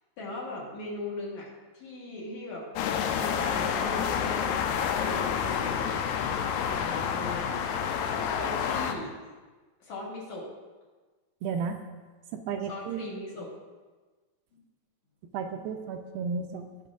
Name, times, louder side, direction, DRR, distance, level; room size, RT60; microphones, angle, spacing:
voice 1, 0.2-2.7 3.1-6.0 6.6-7.6 8.1-9.1 9.8-10.5 12.7-13.5 14.5-14.6, left 1 dB, 55° left, -4 dB, 2.5 m, -39 dB
sound 1, 2.8-8.9, left 7 dB, 80° left, 2.3 m, -29 dB
voice 2, 11.4-11.8 12.3-13.1 15.3-16.7, right 5 dB, 85° right, 5 dB, 2.3 m, -33 dB
17.5 x 5.9 x 2.5 m, 1.3 s
omnidirectional pair, 4.3 m